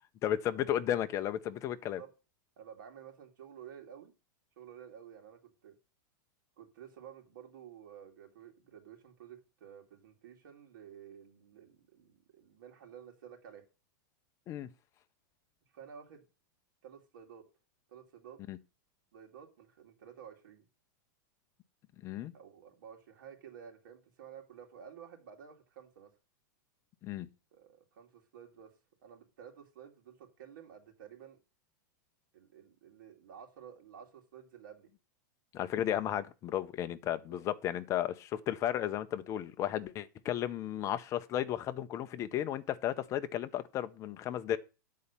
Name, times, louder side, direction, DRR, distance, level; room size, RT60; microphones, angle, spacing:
voice 1, 0.2-2.0 14.5-14.7 18.5-18.6 22.0-22.3 27.0-27.3 35.5-44.6, left 11 dB, 25° left, 0.6 m, -34 dB
voice 2, 1.7-2.1 2.6-4.1 4.6-5.8 6.6-13.6 15.7-16.3 16.8-17.5 17.9-18.4 19.1-20.7 22.3-26.1 27.5-28.7 29.0-31.4 32.3-34.9 37.3-37.4, right 8 dB, 70° right, 2.5 m, -52 dB
8.5 x 4.1 x 7.0 m
supercardioid pair, 150°, 11 cm